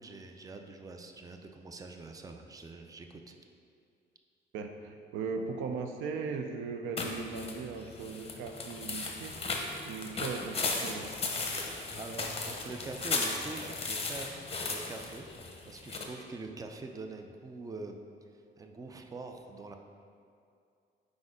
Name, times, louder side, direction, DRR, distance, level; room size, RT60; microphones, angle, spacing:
voice 1, 0.0-3.3 12.0-14.4 14.7-18.0 18.6-19.8, right 3 dB, 15° right, 4 dB, 0.4 m, -44 dB
voice 2, 4.5-9.4 9.8-11.1, right 4 dB, 90° right, 5 dB, 0.5 m, -38 dB
sound 1, 7.0-16.0, left 3 dB, 30° left, 0.8 m, -36 dB
4.7 x 4.1 x 4.9 m, 2.4 s
cardioid pair, 90°, 20 cm